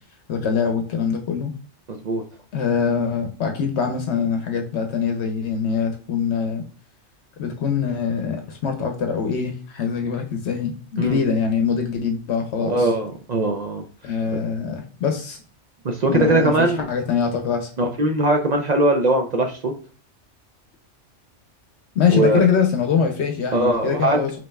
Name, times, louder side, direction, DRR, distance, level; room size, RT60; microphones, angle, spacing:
voice 1, 0.3-1.5 2.5-6.6 7.4-12.9 14.0-15.4 16.1-17.7 21.9-24.4, left 6 dB, 70° left, 4 dB, 0.9 m, -23 dB
voice 2, 1.9-2.2 11.0-11.2 12.6-13.8 15.8-16.9 17.8-19.7 22.1-22.4 23.5-24.2, right 1 dB, 55° right, 4 dB, 0.5 m, -20 dB
5.2 x 2.9 x 2.2 m, 0.40 s
omnidirectional pair, 1.2 m